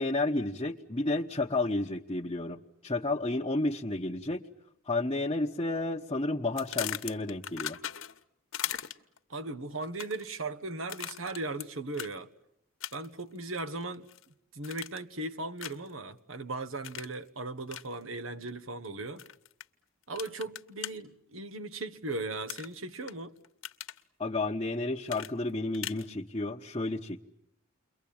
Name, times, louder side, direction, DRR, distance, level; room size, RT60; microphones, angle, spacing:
voice 1, 0.0-4.5 4.9-7.8 24.2-27.2, left 2 dB, 25° left, 1.1 m, -31 dB
sound 1, 6.6-8.2 8.5-9.2 9.8-10.3 10.9-11.7 11.9-12.1 12.8-13.2 13.6-14.2 14.6-15.1 15.6-15.9 16.8-17.1 17.7-17.9 19.2-19.6 20.2-20.9 22.5-23.1 23.4-24.0 25.1-26.1, left 11 dB, 80° left, 1.2 m, -38 dB
voice 2, 9.3-12.3 12.9-14.1 14.5-19.3 20.1-23.4, right 2 dB, 75° right, 1.5 m, -37 dB
29.5 x 23.0 x 8.7 m
head